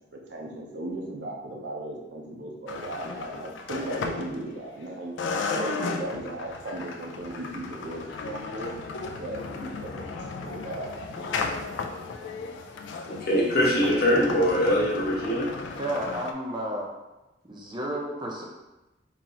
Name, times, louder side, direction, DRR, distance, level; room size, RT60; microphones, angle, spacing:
voice 1, 0.1-5.1 5.5-8.7 9.2-10.1 10.4-11.6, right 1 dB, 70° right, -1 dB, 0.7 m, -36 dB
sound 1, 2.7-4.8 5.2-16.3, left 4 dB, 80° left, 0.3 m, -35 dB
voice 2, 13.0-15.5, equal, 55° left, -4 dB, 0.9 m, -23 dB
voice 3, 15.8-16.9 17.4-18.4, right 1 dB, 25° right, -1 dB, 0.5 m, -32 dB
4.0 x 2.9 x 2.9 m, 1.0 s
head